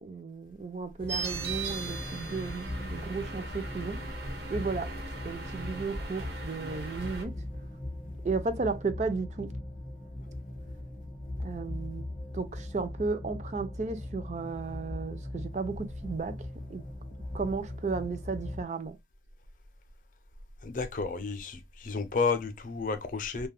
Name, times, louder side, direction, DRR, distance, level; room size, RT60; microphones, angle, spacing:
voice 1, 0.0-4.0 4.5-4.9 5.2-7.4 8.2-9.5 11.4-12.0 12.3-16.4 16.7-16.8 17.3-19.0, right 4 dB, 40° right, 0.4 m, -34 dB
sound 1, 1.0-18.6, left 1 dB, 25° left, 1.1 m, -40 dB
sound 2, 1.1-7.2, right 4 dB, 70° right, 1.1 m, -39 dB
voice 2, 20.6-23.5, left 4 dB, 45° left, 0.5 m, -31 dB
3.3 x 2.3 x 2.2 m
head